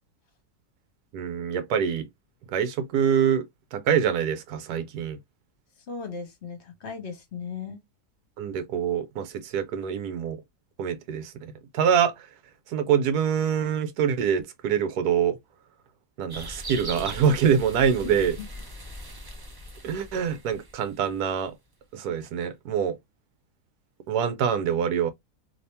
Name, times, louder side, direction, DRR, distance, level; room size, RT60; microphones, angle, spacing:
voice 1, 1.1-2.1 2.5-3.5 3.7-5.2 8.4-10.4 10.8-12.3 12.7-15.4 16.2-18.3 19.8-21.5 21.9-23.0 24.1-25.1, right 8 dB, 80° right, 1.2 m, -25 dB
voice 2, 5.9-7.8 18.1-18.5, left 5 dB, 45° left, 1.2 m, -37 dB
sound 1, 16.3-21.3, right 1 dB, 35° right, 0.3 m, -40 dB
2.9 x 2.8 x 3.3 m
omnidirectional pair, 1.7 m